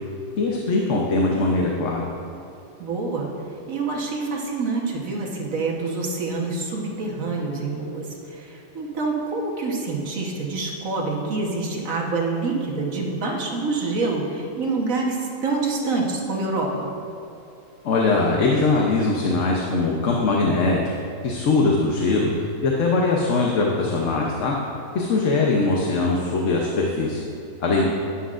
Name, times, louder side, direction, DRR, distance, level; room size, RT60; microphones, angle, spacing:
voice 1, 0.4-2.1 17.8-20.8 21.2-22.3 22.6-24.5 24.9-27.2 27.6-27.8, left 3 dB, 65° left, -2 dB, 1.1 m, -21 dB
voice 2, 2.8-3.3 3.7-16.9 27.7-27.8, right 3 dB, 75° right, -1 dB, 1.6 m, -26 dB
11.0 x 10.0 x 2.5 m, 2.7 s
omnidirectional pair, 1.4 m